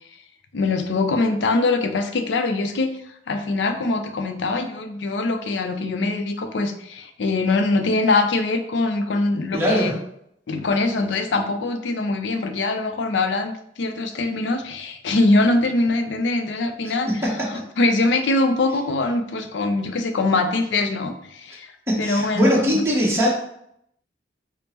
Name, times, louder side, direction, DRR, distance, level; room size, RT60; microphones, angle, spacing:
voice 1, 0.5-2.9 3.3-9.9 10.5-13.5 13.8-17.1 17.5-21.7 22.0-22.8, left 2 dB, 85° left, 6 dB, 0.5 m, -23 dB
voice 2, 9.5-9.9 17.2-17.3 21.9-23.3, equal, 15° right, -4 dB, 0.9 m, -20 dB
5.2 x 2.0 x 2.9 m, 0.73 s
head